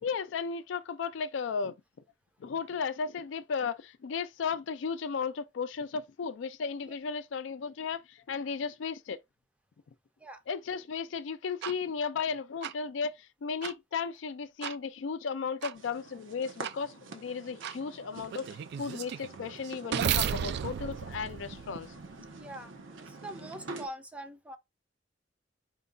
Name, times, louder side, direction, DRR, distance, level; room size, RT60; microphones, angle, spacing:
voice 1, 0.0-1.8 2.4-9.2 10.5-21.9, left 5 dB, 70° left, 0.4 m, -35 dB
sound 1, 11.6-11.7 12.6-12.7 13.6-13.7 14.6-14.8 15.6-15.7 16.6-16.7 17.6-17.8 18.3-22.2, right 8 dB, 60° right, 0.3 m, -34 dB
sound 2, 15.7-23.9, right 3 dB, 85° right, 0.8 m, -47 dB
voice 2, 22.4-22.7 23.0-24.6, right 1 dB, 5° right, 0.5 m, -43 dB
4.4 x 2.3 x 3.8 m
head